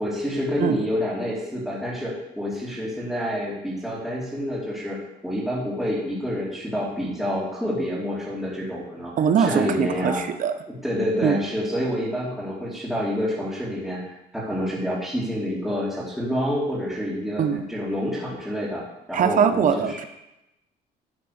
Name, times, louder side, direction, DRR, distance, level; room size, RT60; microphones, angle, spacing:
voice 1, 0.0-5.0 5.2-9.1 9.4-10.2 10.8-18.8 19.1-20.0, equal, ahead, -11 dB, 2.7 m, -28 dB
voice 2, 9.2-10.5 11.2-11.4 17.4-17.6 19.1-20.1, right 7 dB, 50° right, 9 dB, 0.9 m, -22 dB
11.0 x 4.0 x 6.5 m, 0.90 s
cardioid pair, 110°, 17 cm